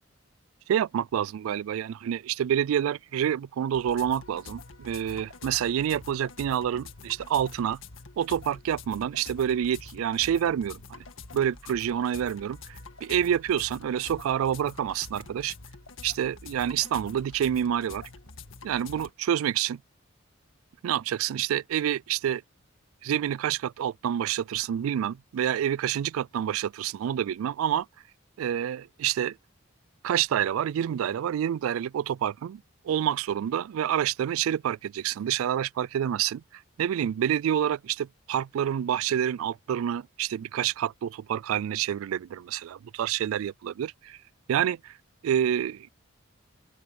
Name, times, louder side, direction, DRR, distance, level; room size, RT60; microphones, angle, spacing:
voice 1, 0.7-7.8 8.2-11.0 11.3-15.5 16.0-18.1 18.6-19.8 20.8-22.4 23.0-27.9 28.4-29.4 30.0-36.4 36.8-44.2 44.5-44.9 45.2-45.9, right 9 dB, 85° right, 0.3 m, -28 dB
sound 1, 3.7-19.1, left 4 dB, 75° left, 1.8 m, -46 dB
open air
head